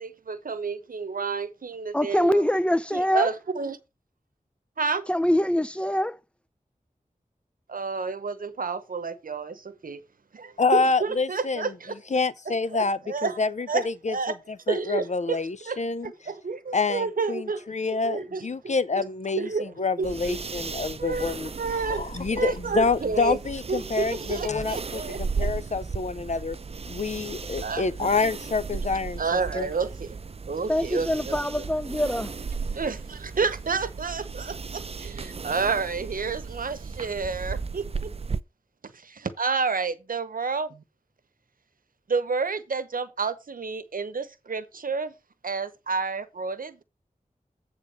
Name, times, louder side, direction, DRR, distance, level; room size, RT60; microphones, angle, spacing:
voice 1, 0.0-2.4 2.9-3.8 4.8-5.0 7.7-10.0 10.3-11.9 12.5-13.4 13.7-14.4 14.7-15.4 15.7-18.5 19.0-19.1 19.4-19.7 20.0-20.4 21.0-23.4 23.7-25.5 27.6-28.1 29.2-30.2 30.5-31.4 32.7-38.1 38.9-40.8 42.1-45.1 45.4-46.8, right 4 dB, 80° right, 0.9 m, -30 dB
voice 2, 1.9-3.3 5.1-6.2 30.7-32.3, left 1 dB, 10° left, 0.4 m, -24 dB
voice 3, 10.6-11.7 12.1-14.2 14.7-16.1 16.7-26.6 26.9-29.2 29.5-29.7, left 4 dB, 55° left, 0.6 m, -27 dB
sound 1, 20.0-38.4, right 5 dB, 45° right, 0.5 m, -35 dB
8.8 x 3.7 x 6.8 m
wide cardioid pair, 85°, 14 cm